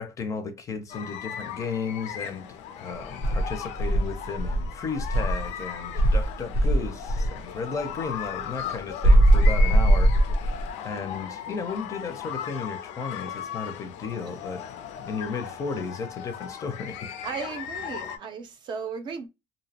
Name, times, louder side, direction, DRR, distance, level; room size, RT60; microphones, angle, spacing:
voice 1, 0.0-2.5 2.8-14.7 15.0-17.2, left 5 dB, 30° left, 0.5 m, -34 dB
sound 1, 0.9-18.2, left 9 dB, 85° left, 0.4 m, -37 dB
Insect, 3.2-5.5 5.9-7.4 9.0-10.7, right 1 dB, 90° right, 0.7 m, -20 dB
voice 2, 17.2-19.3, right 6 dB, 45° right, 0.5 m, -35 dB
2.6 x 2.0 x 2.7 m
cardioid pair, 150°, 11 cm